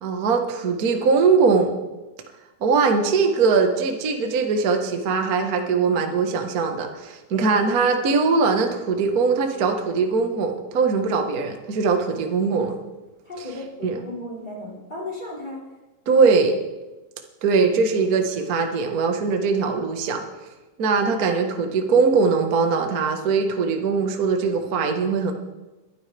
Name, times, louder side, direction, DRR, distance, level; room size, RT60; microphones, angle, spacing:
voice 1, 0.0-1.7 2.6-12.7 13.8-13.9 16.1-16.5 17.4-20.2 20.8-25.3, right 4 dB, 90° right, 4 dB, 0.8 m, -21 dB
voice 2, 7.3-7.6 13.2-15.6, left 2 dB, 15° left, -6 dB, 4.4 m, -35 dB
21.5 x 12.0 x 3.4 m, 1.1 s
omnidirectional pair, 4.0 m